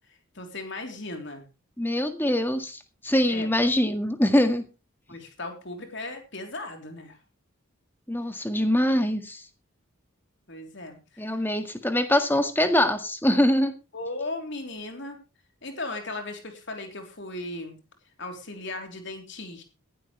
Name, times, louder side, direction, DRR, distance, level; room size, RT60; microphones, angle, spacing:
voice 1, 0.4-1.4 3.3-3.5 5.1-7.2 10.5-11.3 13.9-15.2 15.6-17.8 18.2-19.6, left 2 dB, 55° left, 4 dB, 3.6 m, -37 dB
voice 2, 1.8-4.6 8.1-9.4 11.2-13.7, left 1 dB, 10° left, 7 dB, 1.7 m, -23 dB
18.0 x 12.0 x 3.3 m, 0.30 s
head